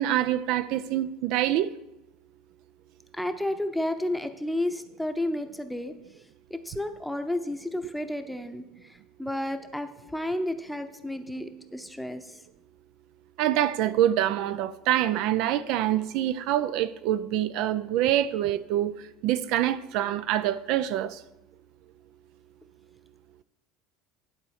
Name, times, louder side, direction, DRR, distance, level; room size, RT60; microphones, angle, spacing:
voice 1, 0.0-1.7 13.4-21.2, right 12 dB, 65° right, 0.3 m, -26 dB
voice 2, 3.1-5.9 6.5-12.4, left 1 dB, ahead, 0.7 m, -32 dB
11.0 x 4.1 x 6.5 m
supercardioid pair, 110°, 0 cm